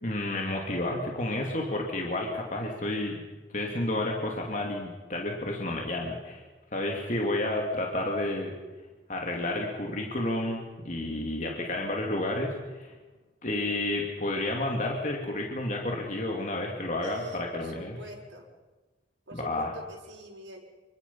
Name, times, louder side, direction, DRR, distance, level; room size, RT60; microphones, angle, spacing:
voice 1, 0.0-3.2 3.5-6.4 6.7-8.5 9.1-12.9 13.4-18.0 19.3-19.7, left 1 dB, 40° left, 0 dB, 2.7 m, -31 dB
voice 2, 17.0-18.5 19.3-20.6, right 1 dB, 85° right, -2 dB, 5.8 m, -45 dB
27.0 x 24.0 x 5.6 m, 1.2 s
head